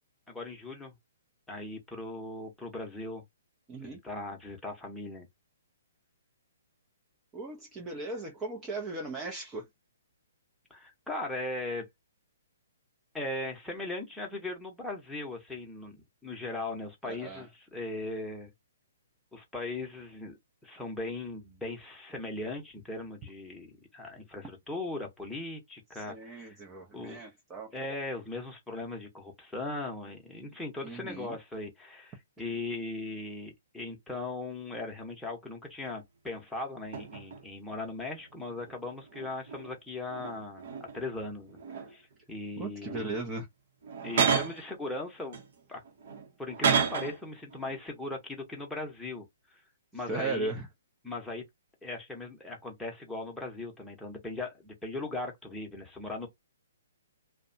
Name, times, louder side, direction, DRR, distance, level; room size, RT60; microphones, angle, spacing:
voice 1, 0.3-0.9 1.5-3.2 3.8-5.3 10.7-11.9 13.1-18.5 19.3-26.6 26.9-27.2 27.7-41.6 41.9-43.1 44.0-45.4 45.7-45.8 46.4-49.2 49.5-49.6 49.9-50.5 51.0-51.4 51.8-56.3, left 2 dB, 5° left, 0.9 m, -39 dB
voice 2, 7.3-9.7 17.0-17.5 25.9-27.7 30.8-31.4 42.6-43.5 50.1-50.7, right 3 dB, 20° right, 0.6 m, -37 dB
sound 1, 36.3-36.4 36.9-37.4 38.2-39.8 40.1-41.1 41.5-42.1 42.8-43.1 43.8-44.7 45.3-47.2 47.5-47.8, right 6 dB, 55° right, 0.9 m, -32 dB
2.6 x 2.2 x 2.6 m
hypercardioid pair, 135°, 0 cm